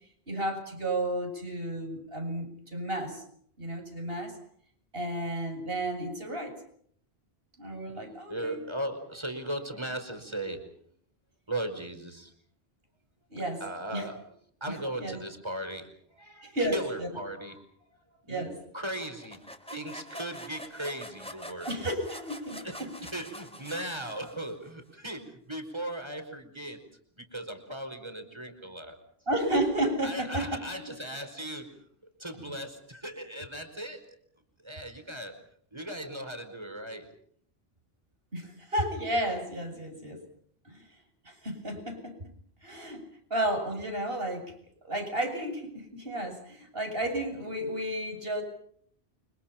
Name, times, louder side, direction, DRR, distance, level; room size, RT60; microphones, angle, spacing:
voice 1, 0.3-3.2 3.6-4.4 4.9-6.6 7.6-8.6 13.3-13.6 13.9-14.1 14.7-15.2 16.4-17.1 18.3-18.5 21.6-22.9 29.3-30.9 32.4-32.5 38.3-40.2 40.6-40.9 41.2-42.3 42.6-43.0 43.3-44.5 44.8-48.4, right 1 dB, 65° right, 4 dB, 8.1 m, -32 dB
voice 2, 8.3-10.7 11.5-12.3 13.6-14.2 14.6-17.6 18.2-21.7 22.6-22.8 23.1-26.8 27.2-29.0 30.0-34.2 34.6-35.4 35.7-37.1, right 1 dB, 25° right, 7 dB, 5.0 m, -38 dB
sound 1, 19.0-24.7, equal, 5° left, 3.8 m, -45 dB
29.5 x 26.5 x 5.9 m, 0.64 s
omnidirectional pair, 1.0 m